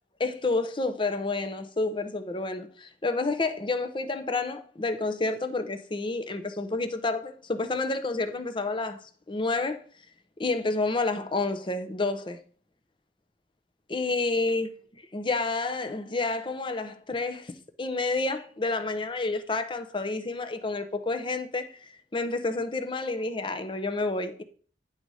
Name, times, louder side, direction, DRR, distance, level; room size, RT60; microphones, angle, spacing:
voice 1, 0.2-9.8 10.4-12.4 13.9-14.7 15.1-17.5 17.8-24.4, left 3 dB, 25° left, 0.7 m, -29 dB
10.5 x 4.1 x 4.8 m
head